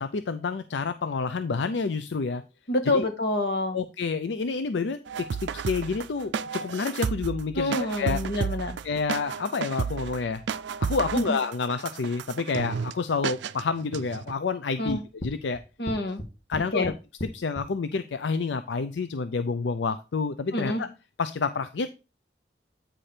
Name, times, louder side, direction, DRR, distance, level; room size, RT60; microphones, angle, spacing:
voice 1, 0.0-2.4 2.9-3.1 3.7-8.2 8.8-10.4 10.8-15.6 16.5-16.9 17.2-20.9 21.2-21.9, left 4 dB, 90° left, 12 dB, 0.5 m, -29 dB
voice 2, 2.7-3.8 7.5-8.8 11.1-11.4 14.8-15.0 15.8-16.2 16.7-16.9 20.5-20.8, left 1 dB, 70° left, 7 dB, 1.5 m, -27 dB
sound 1, 5.1-12.9 13.2-13.6 13.9-14.3, right 6 dB, 85° right, 0.4 m, -32 dB
sound 2, 14.9-17.7, equal, 35° left, 1.4 m, -36 dB
8.9 x 5.0 x 4.3 m, 0.30 s
head